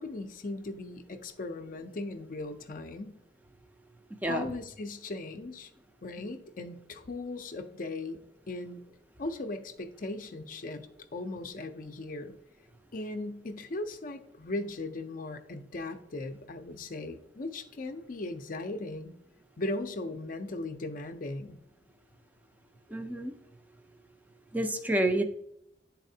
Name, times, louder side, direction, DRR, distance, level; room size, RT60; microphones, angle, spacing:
voice 1, 0.0-3.1 4.2-5.7 6.0-8.2 8.5-8.8 9.2-10.9 11.1-12.4 12.9-19.1 19.6-21.6, left 2 dB, 45° left, 7 dB, 0.5 m, -38 dB
voice 2, 22.9-23.3 24.5-25.2, right 1 dB, 10° right, 7 dB, 0.5 m, -28 dB
10.5 x 4.1 x 2.7 m, 0.78 s
head